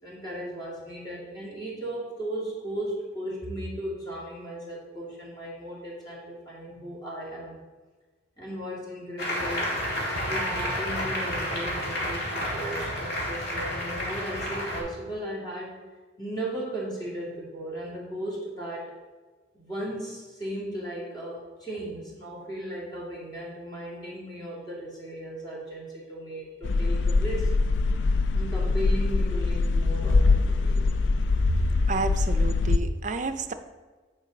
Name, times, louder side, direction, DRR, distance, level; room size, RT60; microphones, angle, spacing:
voice 1, 0.0-7.6 8.4-9.7 10.2-15.8 16.2-18.9 19.5-27.5 28.3-30.9, right 1 dB, 25° left, -5 dB, 2.2 m, -36 dB
Applause, 9.2-14.8, equal, 55° left, 2.1 m, -30 dB
sound 1, 26.6-32.8, left 3 dB, 80° left, 0.4 m, -23 dB
voice 2, 31.4-33.5, right 3 dB, 45° right, 9 dB, 0.5 m, -30 dB
9.3 x 4.6 x 3.9 m, 1.4 s
head